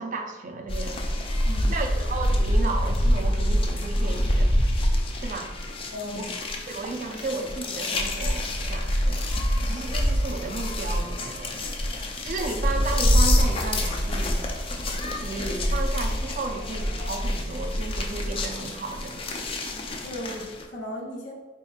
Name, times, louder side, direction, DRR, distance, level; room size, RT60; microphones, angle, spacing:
voice 1, 0.0-1.3 1.7-4.6 5.1-5.5 6.2-6.3 6.7-9.2 9.6-11.6 12.0-14.4 15.2-19.2, right 3 dB, 45° right, 4 dB, 0.4 m, -34 dB
sound 1, 0.7-20.6, equal, 30° left, 0.4 m, -26 dB
voice 2, 1.4-1.8 5.9-6.3 20.0-21.3, left 1 dB, 80° left, -1 dB, 0.8 m, -36 dB
4.3 x 2.8 x 2.4 m, 1.4 s
head